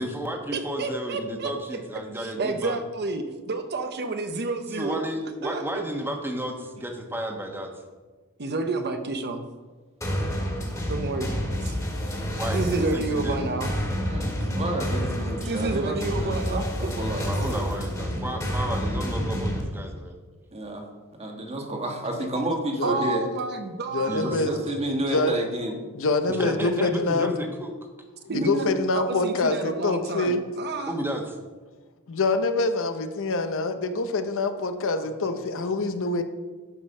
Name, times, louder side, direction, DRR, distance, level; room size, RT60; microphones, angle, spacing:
voice 1, 0.0-2.8 4.8-7.7 12.4-12.6 12.9-13.4 17.2-20.2 24.1-24.4 26.3-27.7 30.9-31.4, right 1 dB, 10° right, 3 dB, 1.2 m, -32 dB
voice 2, 0.5-5.0 5.4-5.8 8.4-9.4 10.9-11.8 12.5-13.7 15.5-16.9 22.8-24.4 28.3-31.0, right 3 dB, 50° right, 6 dB, 0.8 m, -30 dB
sound 1, 10.0-19.6, equal, 15° left, 1.9 m, -29 dB
voice 3, 14.1-17.5 20.5-20.8 21.2-23.2 24.4-25.7 28.3-28.5 35.0-35.1 35.6-35.7, right 1 dB, 30° right, 2 dB, 1.5 m, -31 dB
voice 4, 23.9-24.6 25.1-25.3 25.9-27.3 28.3-30.4 32.1-36.2, left 3 dB, 60° left, 9 dB, 0.7 m, -25 dB
13.0 x 5.3 x 5.5 m, 1.3 s
head